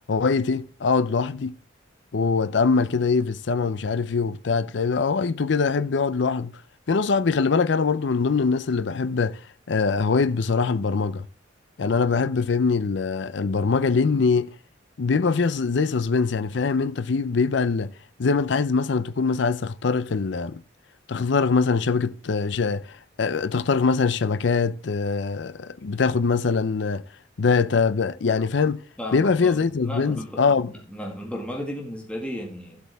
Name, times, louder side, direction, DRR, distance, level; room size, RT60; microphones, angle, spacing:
voice 1, 0.1-1.5 2.1-6.5 6.9-9.4 9.7-11.3 11.8-14.5 15.0-17.9 18.2-20.6 21.1-27.0 27.4-28.8 29.1-30.7, left 4 dB, 65° left, 0.5 m, -23 dB
voice 2, 29.0-32.8, left 1 dB, 5° left, 1.9 m, -34 dB
13.0 x 8.0 x 3.4 m
head